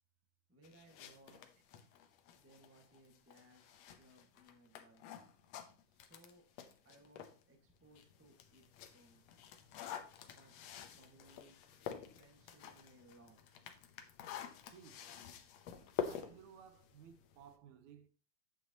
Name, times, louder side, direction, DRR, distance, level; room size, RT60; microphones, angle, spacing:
voice 1, 0.5-1.4 2.3-5.1 5.9-6.4 6.8-8.7 8.9-9.2 10.2-10.5 10.9-11.6 11.9-13.4, right 1 dB, 15° right, 0.5 m, -64 dB
sound 1, 0.6-7.4 7.8-17.6, left 8 dB, 70° left, 1.8 m, -49 dB
voice 2, 14.6-15.1 16.1-18.1, right 8 dB, 80° right, 2.0 m, -58 dB
9.1 x 8.1 x 2.9 m
omnidirectional pair, 3.5 m